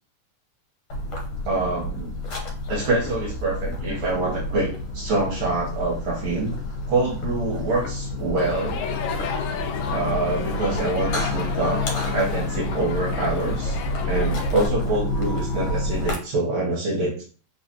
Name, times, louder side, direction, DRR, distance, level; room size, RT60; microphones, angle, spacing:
sound 1, 0.9-16.2, left 1 dB, 60° left, 1.7 m, -29 dB
voice 1, 1.4-2.1 2.7-6.5 6.9-8.8 9.9-11.8 12.1-13.8 14.1-17.2, right 2 dB, 70° right, -4 dB, 2.1 m, -25 dB
Crowd, 8.4-14.7, left 7 dB, 85° left, 1.4 m, -32 dB
4.4 x 3.2 x 2.8 m, 0.40 s
omnidirectional pair, 3.3 m